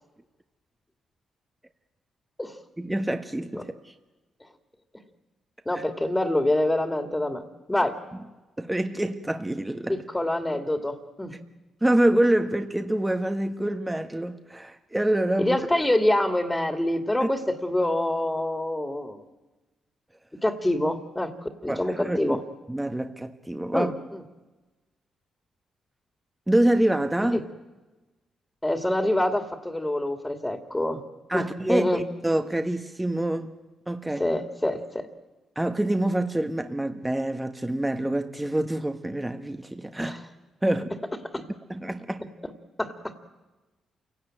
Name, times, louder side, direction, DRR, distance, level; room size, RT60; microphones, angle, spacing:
voice 1, 2.8-3.9 5.7-5.8 7.8-7.9 8.6-10.0 11.8-15.6 17.2-17.3 21.7-22.4 22.7-23.9 26.5-27.4 31.3-33.5 33.9-34.2 35.5-40.2 40.6-41.0 41.7-42.2, right 1 dB, 15° right, 1.5 m, -26 dB
voice 2, 5.7-8.0 9.9-11.4 15.4-19.2 20.4-22.4 23.7-24.2 27.2-27.4 28.6-31.0 31.3-32.0 34.2-35.1 40.0-40.2 41.3-41.4 42.8-43.1, left 1 dB, 15° left, 2.6 m, -26 dB
28.5 x 17.5 x 9.1 m
supercardioid pair, 50°, 0 cm